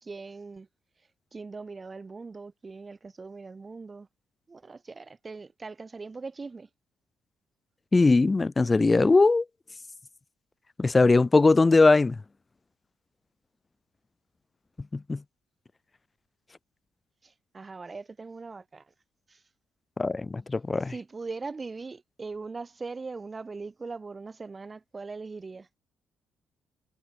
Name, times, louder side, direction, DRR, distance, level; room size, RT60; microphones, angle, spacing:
voice 1, 0.0-0.7 1.3-4.1 4.5-6.7 17.2-18.9 19.3-19.4 20.8-25.7, right 4 dB, 30° right, 1.0 m, -40 dB
voice 2, 7.9-9.4 10.8-12.2 14.9-15.2 20.0-20.9, left 3 dB, 25° left, 0.6 m, -20 dB
cardioid pair, 90°, 0 cm